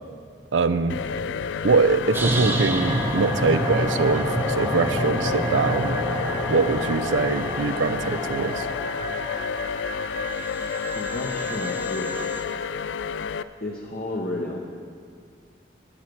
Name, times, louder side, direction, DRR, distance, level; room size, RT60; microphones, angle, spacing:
voice 1, 0.5-1.0 1.6-6.0 6.5-8.7, right 4 dB, 90° right, 12 dB, 0.5 m, -23 dB
sound 1, 0.9-13.4, left 6 dB, 75° left, 0.3 m, -30 dB
sound 2, 2.1-12.4, right 1 dB, 10° right, 0.8 m, -29 dB
voice 2, 10.9-12.3 13.6-14.6, left 1 dB, 45° left, -2 dB, 0.8 m, -32 dB
10.0 x 9.0 x 6.1 m, 2.2 s
head